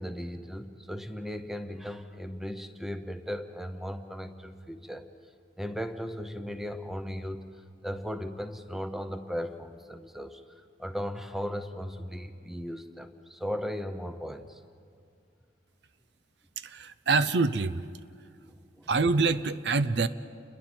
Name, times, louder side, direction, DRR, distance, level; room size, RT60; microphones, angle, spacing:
voice 1, 0.0-5.0 5.6-10.4 10.8-14.6 18.8-18.9, equal, ahead, 8 dB, 0.8 m, -37 dB
voice 2, 16.6-17.8 18.9-20.1, right 4 dB, 65° right, 13 dB, 0.6 m, -25 dB
29.5 x 21.5 x 4.4 m, 2.3 s
head